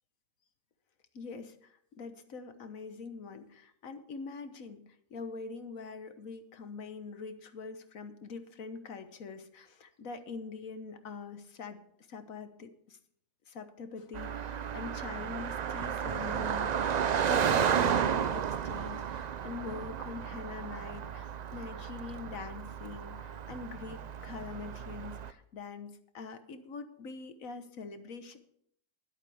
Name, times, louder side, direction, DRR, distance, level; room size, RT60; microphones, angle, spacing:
voice 1, 1.1-11.8 12.1-13.0 13.5-28.4, left 4 dB, 75° left, 9 dB, 1.6 m, -44 dB
Car passing by, 14.1-25.3, right 8 dB, 80° right, 0.3 m, -33 dB
21.0 x 8.2 x 3.5 m, 0.69 s
omnidirectional pair, 1.4 m